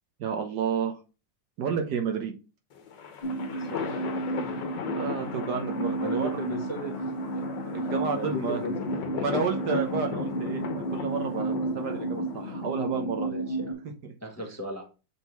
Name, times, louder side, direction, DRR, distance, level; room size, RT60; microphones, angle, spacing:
voice 1, 0.2-1.0 1.6-2.3 4.9-6.4 7.7-8.6 9.2-10.6 10.9-13.3 14.0-14.1, right 6 dB, 65° right, 4 dB, 1.4 m, -31 dB
sound 1, 2.7-13.2, left 6 dB, 70° left, 1.6 m, -37 dB
sound 2, 3.2-13.7, right 2 dB, 85° right, 3.9 m, -32 dB
voice 2, 3.6-4.0 4.4-4.6 6.0-7.4 7.7-8.7 13.2-13.8 14.2-14.8, equal, 10° left, 1 dB, 0.9 m, -37 dB
7.2 x 3.7 x 4.6 m, 0.33 s
omnidirectional pair, 2.0 m